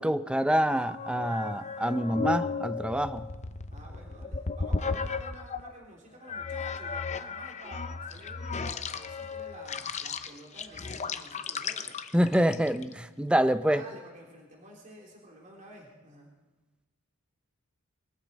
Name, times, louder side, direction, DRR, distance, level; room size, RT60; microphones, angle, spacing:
voice 1, 0.0-3.3 12.1-13.8, equal, 5° right, 12 dB, 0.5 m, -26 dB
sound 1, 0.8-5.7 6.3-12.9, left 4 dB, 30° left, 0.7 m, -35 dB
voice 2, 3.7-12.0 13.6-16.3, right 1 dB, 35° right, -1 dB, 3.1 m, -50 dB
22.5 x 14.5 x 4.2 m, 1.1 s
head